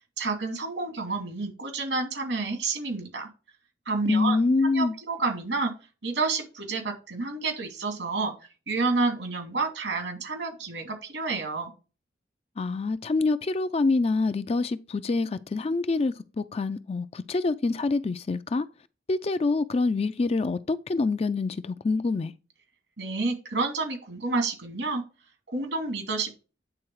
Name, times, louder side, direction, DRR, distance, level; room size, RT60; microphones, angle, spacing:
voice 1, 0.2-3.3 3.9-4.4 4.6-5.7 6.0-8.3 8.7-11.7 23.0-25.0 25.5-26.4, right 3 dB, 85° right, 2.6 m, -29 dB
voice 2, 4.1-4.9 12.6-18.7 19.1-22.3, left 3 dB, 35° left, 0.4 m, -26 dB
8.9 x 3.9 x 4.7 m
head